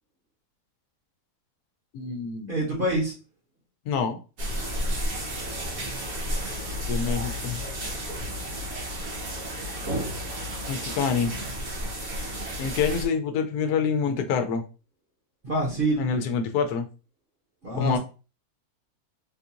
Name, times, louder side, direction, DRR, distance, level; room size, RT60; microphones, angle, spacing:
voice 1, 1.9-2.5 3.9-4.2 6.9-7.6 10.7-11.3 12.6-14.6 16.0-16.9 17.8-18.0, left 6 dB, 85° left, 6 dB, 1.1 m, -26 dB
voice 2, 2.5-3.1 15.4-16.1 17.6-18.0, right 1 dB, 40° right, -4 dB, 1.1 m, -26 dB
sound 1, 4.4-13.1, equal, 80° right, 1.8 m, -32 dB
3.8 x 2.4 x 2.7 m, 0.33 s
omnidirectional pair, 1.6 m